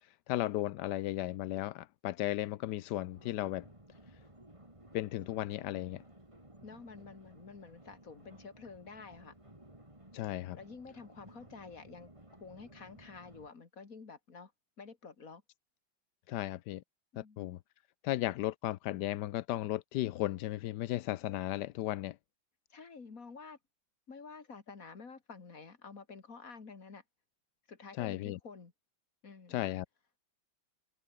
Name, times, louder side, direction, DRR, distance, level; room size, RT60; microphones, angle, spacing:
voice 1, 0.3-3.6 4.9-6.0 10.1-10.6 16.3-16.8 17.2-17.6 18.0-22.2 28.0-28.4 29.5-29.8, left 15 dB, 70° left, 1.1 m, -35 dB
sound 1, 3.1-13.5, right 1 dB, 15° right, 4.4 m, -57 dB
voice 2, 6.6-9.3 10.5-12.1 12.4-14.5 14.8-15.4 17.1-17.5 22.7-23.6 24.1-27.0 27.7-28.7 29.2-29.6, left 4 dB, 40° left, 2.8 m, -50 dB
omnidirectional pair, 2.2 m